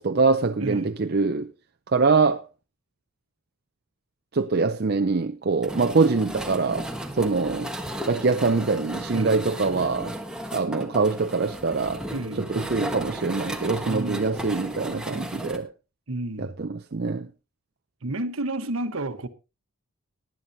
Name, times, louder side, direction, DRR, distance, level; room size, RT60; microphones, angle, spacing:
voice 1, 0.0-1.5 1.9-2.4 4.3-6.9 7.1-7.7 8.1-10.1 10.5-12.0 12.5-15.7 16.4-17.3, right 4 dB, 45° right, 0.5 m, -24 dB
voice 2, 0.6-0.9 9.1-9.5 12.1-12.5 13.9-14.4 16.1-16.5 18.0-19.3, right 2 dB, 70° right, 1.1 m, -31 dB
sound 1, 5.6-15.6, right 1 dB, 5° right, 1.2 m, -35 dB
19.0 x 10.5 x 2.7 m
head